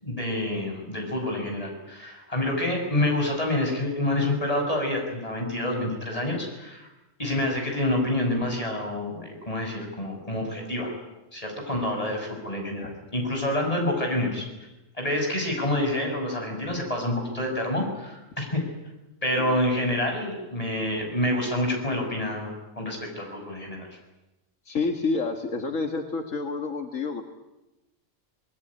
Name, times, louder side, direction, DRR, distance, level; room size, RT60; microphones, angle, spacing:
voice 1, 0.0-6.9 7.2-10.9 11.3-14.5 15.0-18.6 19.2-23.9, left 1 dB, 25° left, 1 dB, 6.6 m, -27 dB
voice 2, 24.7-27.2, left 4 dB, 80° left, 5 dB, 2.2 m, -29 dB
25.5 x 20.0 x 9.9 m, 1.0 s
omnidirectional pair, 1.3 m